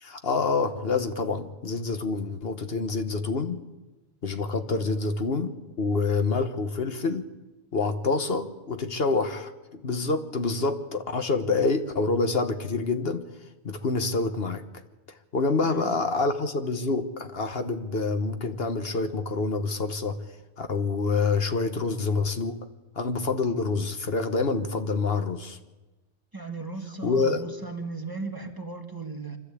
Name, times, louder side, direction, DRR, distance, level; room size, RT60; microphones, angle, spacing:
voice 1, 0.0-3.6 4.2-7.3 7.7-13.3 13.6-14.6 15.3-20.2 20.6-22.6 23.0-25.6 27.0-27.5, left 3 dB, 70° left, 8 dB, 1.5 m, -27 dB
voice 2, 15.6-16.0 26.3-29.4, right 3 dB, 20° right, 4 dB, 1.8 m, -36 dB
26.0 x 13.0 x 8.4 m, 1.1 s
omnidirectional pair, 1.1 m